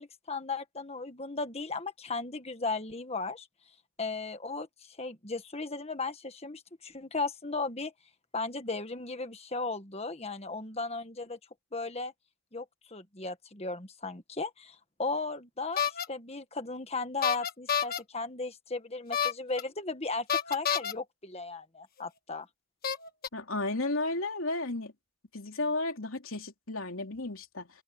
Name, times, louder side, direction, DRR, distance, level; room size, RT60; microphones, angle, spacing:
voice 1, 0.0-3.5 4.0-7.9 8.3-11.4 11.7-12.1 12.5-22.5, left 3 dB, 30° left, 1.5 m, -36 dB
sound 1, 15.8-16.0 17.2-18.0 19.1-19.6 20.3-20.9 22.0-22.1 22.8-23.3, left 8 dB, 45° left, 1.4 m, -29 dB
voice 2, 23.3-24.9 25.3-27.7, left 2 dB, 70° left, 3.3 m, -33 dB
head